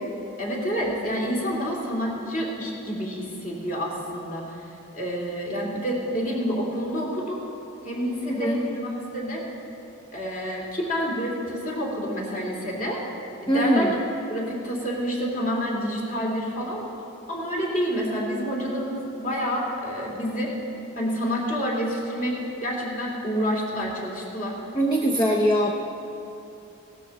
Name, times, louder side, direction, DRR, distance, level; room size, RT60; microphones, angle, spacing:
voice 1, 0.4-7.4 7.8-9.4 10.1-13.0 13.4-13.9 14.3-16.9 17.3-20.5 20.9-24.6, equal, 40° left, -2 dB, 2.7 m, -28 dB
voice 2, 13.5-13.9 24.7-25.7, equal, 20° left, 0 dB, 0.7 m, -21 dB
17.0 x 13.0 x 4.2 m, 2.9 s
head